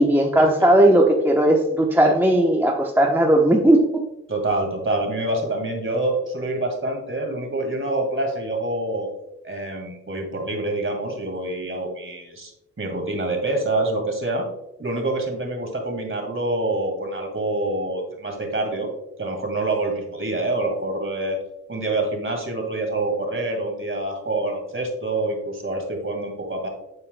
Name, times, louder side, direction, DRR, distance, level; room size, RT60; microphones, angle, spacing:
voice 1, 0.0-4.0, right 1 dB, 5° right, 1 dB, 0.9 m, -17 dB
voice 2, 4.3-9.1 9.4-12.5 12.8-14.5 14.8-18.9 19.2-21.4 21.7-26.7, right 2 dB, 40° right, 3 dB, 1.9 m, -26 dB
11.0 x 4.4 x 2.2 m, 0.85 s
cardioid pair, 50°, 31 cm